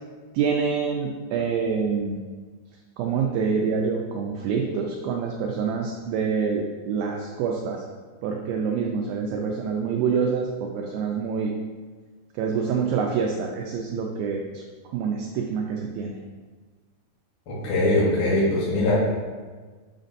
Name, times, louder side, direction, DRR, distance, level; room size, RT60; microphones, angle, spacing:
voice 1, 0.3-2.2 3.0-7.8 8.2-11.5 12.4-14.6 14.9-16.2, right 6 dB, 85° right, 1 dB, 2.1 m, -26 dB
voice 2, 17.5-18.9, left 2 dB, 60° left, -6 dB, 1.2 m, -22 dB
7.3 x 2.5 x 5.2 m, 1.4 s
omnidirectional pair, 4.7 m